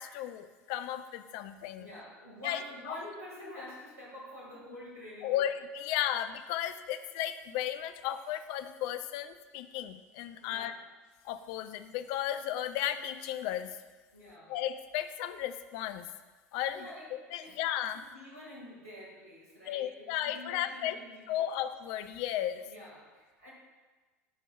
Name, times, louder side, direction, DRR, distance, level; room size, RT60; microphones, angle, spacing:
voice 1, 0.0-1.9 2.4-2.6 2.9-3.0 5.2-10.7 11.2-13.7 14.5-16.1 16.5-16.9 17.1-18.0 19.7-21.0 21.3-22.6, left 11 dB, 50° left, 11 dB, 0.4 m, -34 dB
voice 2, 1.8-5.5 10.4-10.8 14.1-14.5 16.7-17.6 17.9-21.4 22.6-23.5, left 1 dB, 80° right, -6 dB, 1.8 m, -48 dB
10.5 x 4.5 x 2.3 m, 1.3 s
figure-of-eight pair, 70°, 8 cm